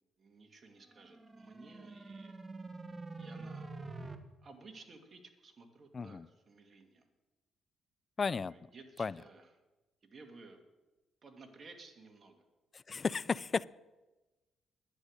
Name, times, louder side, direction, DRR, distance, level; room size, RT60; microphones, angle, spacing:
voice 1, 0.2-2.4 3.2-3.7 4.4-7.1 8.4-9.5 10.0-10.6 11.2-12.4, right 3 dB, 40° right, 4 dB, 2.2 m, -56 dB
sound 1, 0.8-4.2, right 3 dB, 20° right, 1.1 m, -46 dB
voice 2, 5.9-6.3 8.2-8.5 9.0-9.2 12.7-13.6, left 5 dB, 35° left, 20 dB, 0.3 m, -34 dB
10.5 x 9.8 x 6.6 m, 1.1 s
cardioid pair, 90°, 0 cm